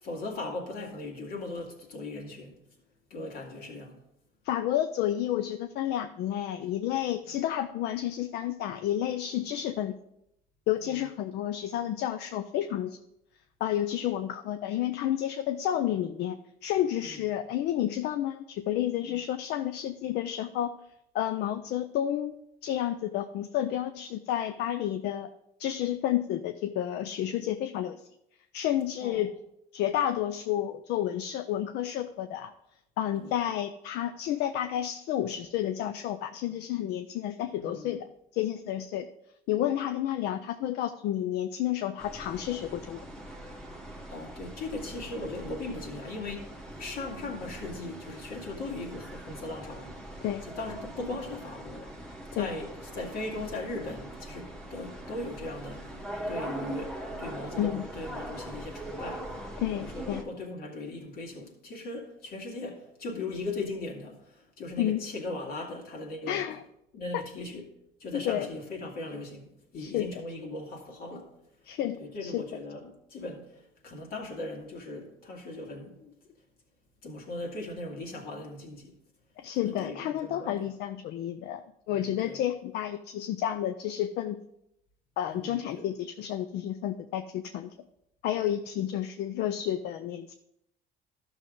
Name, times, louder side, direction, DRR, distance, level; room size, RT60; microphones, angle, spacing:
voice 1, 0.0-2.6 3.1-4.0 7.3-7.4 10.8-11.0 17.0-17.2 19.0-19.2 29.0-29.2 33.2-33.3 37.6-37.9 44.1-46.5 46.8-50.0 50.4-51.9 52.3-55.9 56.3-59.3 59.7-66.5 66.9-67.6 68.0-71.3 72.0-76.3 77.0-78.9 79.6-80.7 81.9-82.4 85.3-85.8 88.7-88.9, left 2 dB, 65° left, 2.3 m, -39 dB
voice 2, 4.4-9.9 10.7-13.0 13.6-16.4 16.6-20.7 21.1-22.3 22.6-25.3 25.6-28.0 28.5-29.3 29.7-32.5 33.0-38.0 38.3-39.1 39.5-43.0 50.2-50.4 52.4-52.5 57.6-57.8 59.6-60.2 64.8-65.0 66.3-66.6 67.1-67.2 68.1-68.5 69.8-70.1 71.7-72.4 79.4-84.4 85.2-87.7 88.2-90.3, left 11 dB, 80° left, 0.5 m, -30 dB
sound 1, 42.0-60.2, right 1 dB, 5° left, 1.2 m, -41 dB
12.5 x 6.2 x 3.8 m
cardioid pair, 110°, 17 cm